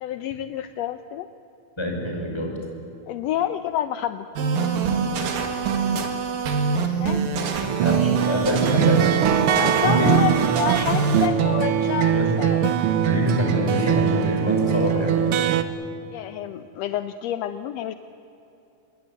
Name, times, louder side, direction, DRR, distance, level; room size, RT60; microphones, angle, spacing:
voice 1, 0.0-1.3 3.1-4.3 7.0-7.3 9.6-12.8 16.1-17.9, left 11 dB, 75° left, 11 dB, 1.6 m, -28 dB
voice 2, 1.8-2.5 7.8-9.1 9.8-10.4 12.1-12.3 13.0-15.4, equal, 5° left, 1 dB, 5.3 m, -25 dB
sound 1, 4.4-11.3, right 5 dB, 90° right, 3.8 m, -25 dB
sound 2, 7.7-15.6, right 10 dB, 65° right, 1.4 m, -22 dB
28.0 x 21.5 x 9.3 m, 2.8 s
omnidirectional pair, 3.8 m